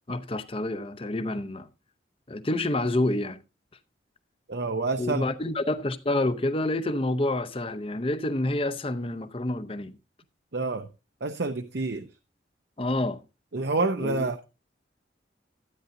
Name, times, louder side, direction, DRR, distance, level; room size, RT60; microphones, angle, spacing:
voice 1, 0.1-1.7 2.3-3.4 5.0-10.0 12.8-13.2 14.0-14.3, left 1 dB, 30° left, 0.7 m, -28 dB
voice 2, 4.5-5.2 10.5-10.9 11.2-12.1 13.5-14.4, right 3 dB, 65° right, 0.7 m, -28 dB
13.0 x 9.3 x 2.6 m
head